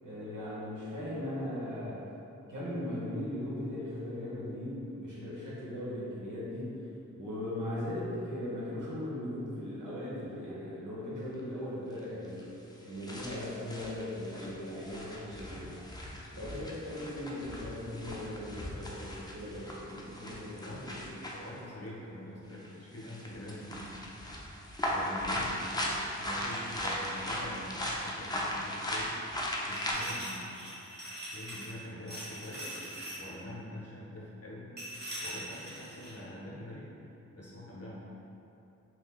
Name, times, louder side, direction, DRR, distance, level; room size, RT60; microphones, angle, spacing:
voice 1, 0.0-2.1 2.5-6.8 7.2-12.5 12.8-15.8 16.3-21.1, left 1 dB, 75° right, -8 dB, 0.9 m, -38 dB
sound 1, 11.4-11.5 12.4-12.5 12.9-21.5 22.5-22.7 23.0-29.9, left 1 dB, 15° left, 0.3 m, -38 dB
voice 2, 19.8-24.0 24.9-29.2 29.6-30.5 31.3-34.7 35.2-36.9 37.3-38.0, left 1 dB, 50° left, -5 dB, 0.7 m, -45 dB
sound 2, 29.7-31.8 32.1-33.2 34.8-36.1, right 1 dB, 30° right, 0.9 m, -42 dB
3.6 x 2.8 x 2.3 m, 2.9 s
wide cardioid pair, 105°, 31 cm